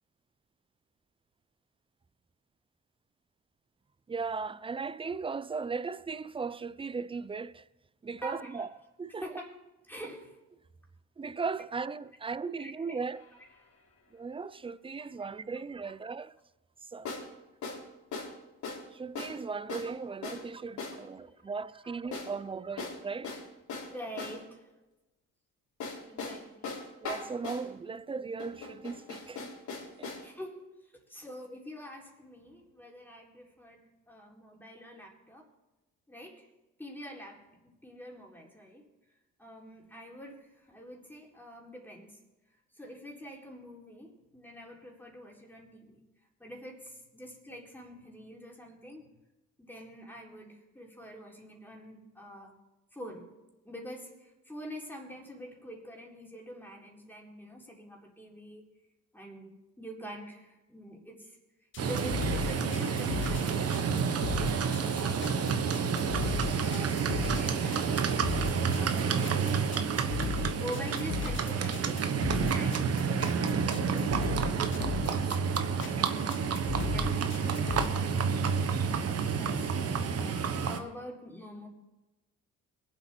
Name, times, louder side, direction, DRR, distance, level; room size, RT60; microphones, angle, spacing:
voice 1, 4.1-7.6 8.0-8.7 9.0-9.2 11.2-13.2 14.1-16.4 16.9-17.1 18.9-23.3 27.0-29.6 30.0-30.1, right 4 dB, 20° right, 0.5 m, -37 dB
voice 2, 8.2-8.7 9.2-9.5 9.9-10.3 12.6-13.0 13.6-13.7 15.0-15.1 15.8-15.9 20.1-20.2 21.0-21.1 21.8-21.9 23.9-24.7 26.0-26.7 30.2-35.5 36.1-36.5 36.8-38.9 39.4-42.2 42.7-46.0 46.4-49.2 49.6-52.5 52.9-53.3 53.6-58.6 59.1-61.4 61.8-68.1 68.3-69.5 70.3-73.4 73.8-74.8 75.2-75.7 76.0-76.4 76.9-78.5 79.4-79.7 80.0-81.7, equal, 5° left, 3.9 m, -46 dB
sound 1, 13.1-13.2 17.0-17.3 17.6-17.8 18.1-18.3 18.6-18.9 19.1-19.4 19.7-19.9 20.2-20.5 20.8-21.0 22.1-22.3 22.8-24.4 25.8-27.7 28.4-30.3, left 4 dB, 70° left, 4.0 m, -39 dB
sound 2, 61.7-77.9, left 8 dB, 40° left, 0.6 m, -37 dB
Livestock farm animals working animals, 61.8-80.8, right 6 dB, 55° right, 1.2 m, -29 dB
22.0 x 8.1 x 4.5 m
cardioid pair, 90°, 30 cm